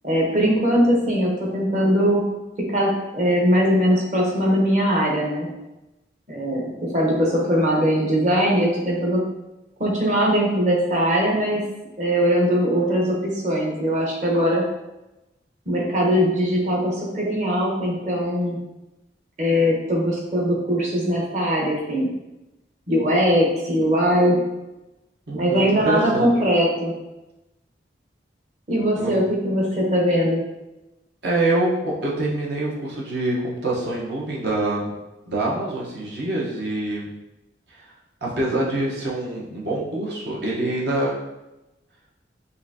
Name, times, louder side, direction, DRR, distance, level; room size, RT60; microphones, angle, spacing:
voice 1, 0.0-2.2 2.6-5.5 6.3-9.2 9.8-11.6 12.0-14.6 15.7-18.6 19.4-22.1 22.9-24.4 25.3-26.9 28.7-30.4, equal, 40° right, -2 dB, 0.9 m, -21 dB
voice 2, 25.3-26.3 28.9-29.1 31.2-34.9 35.3-37.1 37.7-37.8 38.2-41.1, right 2 dB, 70° right, -5 dB, 1.1 m, -25 dB
5.5 x 2.6 x 2.8 m, 0.99 s
head